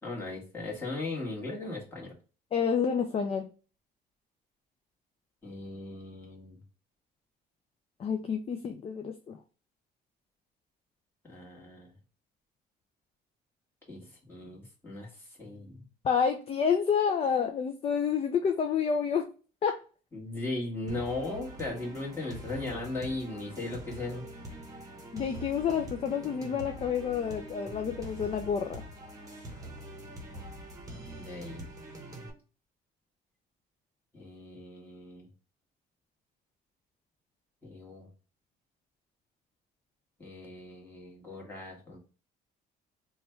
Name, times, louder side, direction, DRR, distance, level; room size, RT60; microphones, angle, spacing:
voice 1, 0.0-2.1 5.4-6.6 11.2-11.9 13.9-15.8 20.1-24.3 31.0-31.7 34.1-35.3 37.6-38.1 40.2-42.0, left 2 dB, 15° left, -3 dB, 1.6 m, -38 dB
voice 2, 2.5-3.5 8.0-9.4 16.0-19.3 19.6-19.7 25.1-28.8, left 7 dB, 35° left, 5 dB, 0.4 m, -29 dB
sound 1, 20.9-32.3, right 1 dB, 20° right, 1.0 m, -44 dB
3.1 x 2.3 x 4.3 m, 0.36 s
cardioid pair, 110°, 17 cm